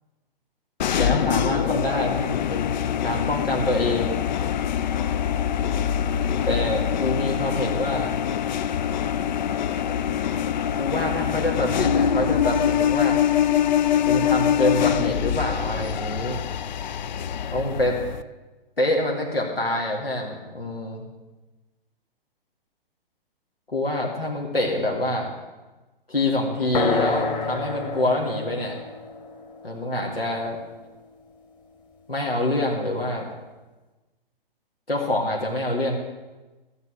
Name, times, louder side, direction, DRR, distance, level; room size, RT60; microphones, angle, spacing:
sound 1, 0.8-18.2, left 9 dB, 50° left, 0.5 m, -24 dB
voice 1, 1.0-4.2 6.4-8.2 10.8-13.2 14.1-16.4 17.5-18.0 18.8-21.0 23.7-25.3 26.1-28.8 29.6-30.6 32.1-33.3 34.9-36.0, left 1 dB, 90° left, -1 dB, 2.0 m, -26 dB
sound 2, 26.7-30.7, left 3 dB, 15° left, 1.3 m, -29 dB
13.5 x 6.8 x 7.7 m, 1.2 s
figure-of-eight pair, 120°, 29 cm